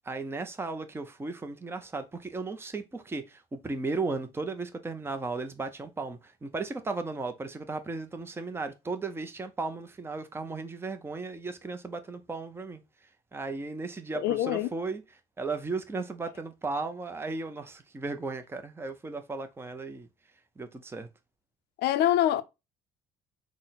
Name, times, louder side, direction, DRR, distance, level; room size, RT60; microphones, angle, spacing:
voice 1, 0.1-12.8 13.3-15.0 15.4-20.1 20.6-21.1, right 3 dB, 15° right, 0.6 m, -35 dB
voice 2, 14.1-14.7 21.8-22.4, left 12 dB, 75° left, 0.6 m, -25 dB
6.0 x 2.2 x 4.0 m
cardioid pair, 110°, 17 cm